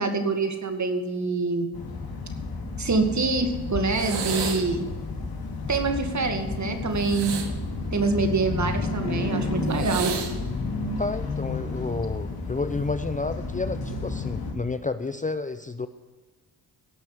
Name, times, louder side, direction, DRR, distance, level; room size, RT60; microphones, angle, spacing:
voice 1, 0.0-1.7 2.8-4.9 5.7-7.3 7.9-10.1, right 3 dB, 45° right, 6 dB, 2.2 m, -25 dB
sound 1, 1.7-14.5, left 3 dB, 60° left, 3.0 m, -31 dB
sound 2, 3.9-4.8 7.0-8.5 9.7-10.3 11.4-11.7, right 6 dB, 85° right, 1.9 m, -32 dB
voice 2, 11.0-15.9, left 3 dB, 20° left, 11 dB, 0.6 m, -30 dB
17.0 x 6.0 x 8.0 m, 1.3 s
cardioid pair, 80°, 41 cm